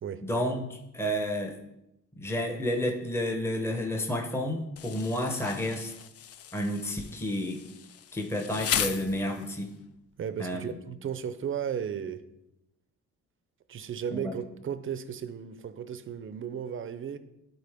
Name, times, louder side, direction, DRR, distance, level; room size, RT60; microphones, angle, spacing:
voice 1, 0.2-1.6 2.2-5.9 6.5-7.6 8.1-9.7 10.4-10.7 14.1-14.3, left 1 dB, 10° left, 0.9 m, -30 dB
Insect, 4.8-9.7, left 9 dB, 55° left, 0.5 m, -36 dB
voice 2, 10.2-12.2 13.7-17.2, right 8 dB, 45° right, 0.6 m, -35 dB
11.5 x 3.8 x 3.5 m
cardioid pair, 90°, 30 cm